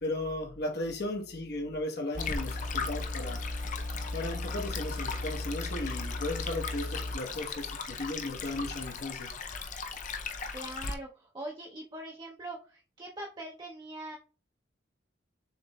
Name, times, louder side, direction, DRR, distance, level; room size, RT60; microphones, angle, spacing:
voice 1, 0.0-3.4 4.1-9.3, left 1 dB, 60° left, 1.1 m, -36 dB
sound 1, 2.1-7.1, left 2 dB, 50° right, 0.9 m, -37 dB
Stream, 2.2-10.9, left 5 dB, 45° left, 0.5 m, -38 dB
voice 2, 10.3-14.2, right 1 dB, 25° right, 0.6 m, -42 dB
7.0 x 3.0 x 2.3 m
head